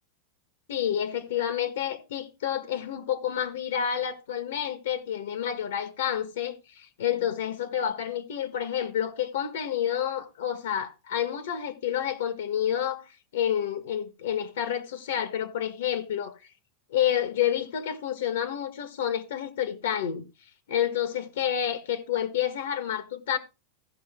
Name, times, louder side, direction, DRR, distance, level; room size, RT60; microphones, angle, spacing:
voice 1, 0.7-16.3 16.9-20.3 20.7-23.4, left 9 dB, 90° left, 1.5 m, -29 dB
16.5 x 5.8 x 3.7 m
supercardioid pair, 170°, 0 cm